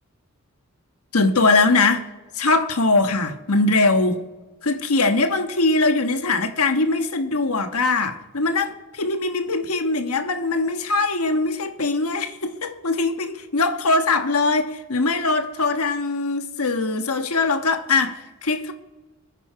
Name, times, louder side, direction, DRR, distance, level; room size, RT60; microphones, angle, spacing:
voice 1, 1.1-2.1 2.3-4.2 4.6-18.7, left 3 dB, 80° left, 1.3 m, -21 dB
25.5 x 9.9 x 4.8 m
head